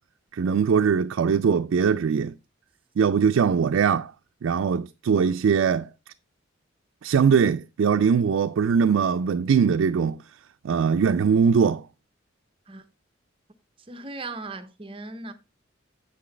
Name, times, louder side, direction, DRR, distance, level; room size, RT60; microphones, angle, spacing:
voice 1, 0.3-2.3 3.0-4.1 4.4-5.9 7.0-10.2 10.6-11.8, right 6 dB, 90° right, 0.4 m, -21 dB
voice 2, 13.9-15.3, right 3 dB, 25° right, 0.7 m, -37 dB
7.7 x 6.1 x 3.2 m
head